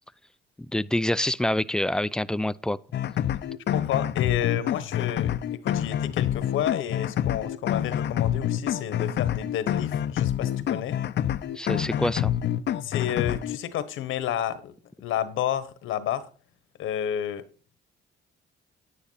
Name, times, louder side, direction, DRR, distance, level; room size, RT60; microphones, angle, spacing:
voice 1, 0.7-2.8 11.6-12.3, left 1 dB, 5° left, 0.4 m, -26 dB
sound 1, 2.9-13.6, left 10 dB, 60° left, 0.6 m, -27 dB
voice 2, 3.7-11.0 12.8-14.7 15.0-16.3 16.8-17.4, left 10 dB, 85° left, 1.3 m, -30 dB
10.0 x 10.0 x 4.1 m
cardioid pair, 90°, 20 cm